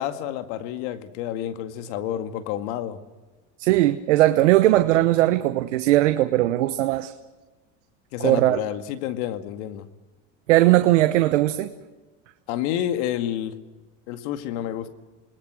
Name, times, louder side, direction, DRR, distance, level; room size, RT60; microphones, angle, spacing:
voice 1, 0.0-3.0 8.1-9.9 12.5-13.6 14.1-14.9, left 11 dB, 75° left, 9 dB, 2.2 m, -29 dB
voice 2, 3.6-7.1 8.2-8.6 10.5-11.7, right 15 dB, 90° right, 9 dB, 1.2 m, -19 dB
28.0 x 20.5 x 6.3 m, 1.2 s
supercardioid pair, 105°, 35 cm